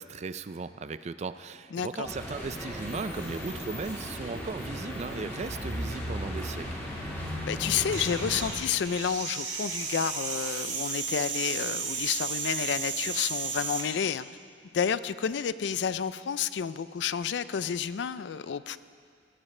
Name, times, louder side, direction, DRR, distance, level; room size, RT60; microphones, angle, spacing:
voice 1, 0.0-6.7, right 4 dB, 40° right, 13 dB, 0.4 m, -37 dB
voice 2, 1.7-2.1 7.5-14.3 14.7-18.8, left 7 dB, 70° left, 15 dB, 0.4 m, -30 dB
sound 1, 2.0-8.5, equal, 15° left, 3.2 m, -36 dB
sound 2, 7.7-13.9, right 5 dB, 85° right, 2.1 m, -34 dB
18.0 x 15.0 x 3.3 m, 2.2 s
head